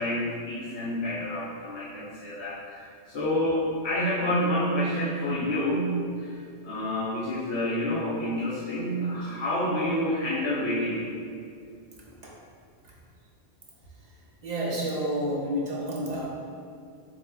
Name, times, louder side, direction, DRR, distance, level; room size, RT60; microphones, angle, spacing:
voice 1, 0.0-6.4 6.6-11.0, equal, 75° left, -9 dB, 1.1 m, -28 dB
voice 2, 14.4-16.3, equal, 45° right, -4 dB, 0.8 m, -29 dB
7.1 x 2.9 x 2.2 m, 2.3 s
omnidirectional pair, 1.1 m